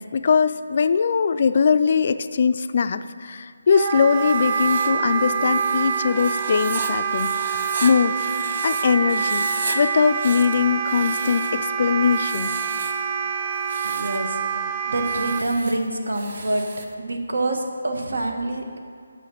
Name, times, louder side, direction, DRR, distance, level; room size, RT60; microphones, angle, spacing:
voice 1, 0.0-9.5 9.7-12.5, left 6 dB, 45° left, 12 dB, 0.3 m, -21 dB
Wind instrument woodwind instrument, 3.7-15.4, right 6 dB, 25° right, 0.5 m, -26 dB
Writing, 4.1-8.8 9.1-9.8 10.1-11.6 12.1-13.0 13.5-14.2 14.9-16.9, right 3 dB, 45° right, 0.8 m, -35 dB
voice 2, 13.8-14.4 14.9-16.6 17.0-18.8, right 2 dB, 80° right, 3 dB, 1.3 m, -26 dB
7.0 x 5.9 x 7.5 m, 2.2 s
figure-of-eight pair, 165°, 0 cm